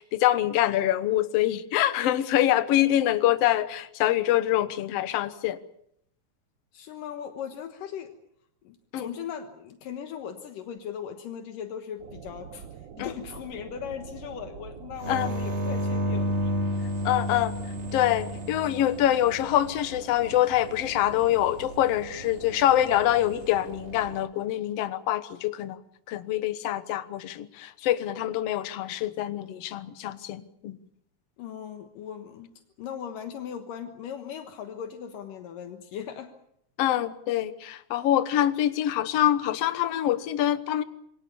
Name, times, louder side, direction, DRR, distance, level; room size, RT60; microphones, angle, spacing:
voice 1, 0.0-5.6 8.9-9.1 13.0-13.1 15.1-15.3 17.1-17.5 17.9-25.8 26.1-30.8 36.8-40.8, left 12 dB, 60° left, 12 dB, 1.8 m, -25 dB
voice 2, 6.7-8.2 8.6-12.7 13.0-16.4 31.4-32.5 32.8-36.3, left 8 dB, 80° left, 6 dB, 3.0 m, -38 dB
sound 1, 12.0-24.3, right 8 dB, 85° right, 1.0 m, -44 dB
sound 2, 15.0-19.6 22.9-23.4, equal, 30° right, 1.2 m, -31 dB
27.0 x 22.5 x 7.0 m, 0.72 s
omnidirectional pair, 3.9 m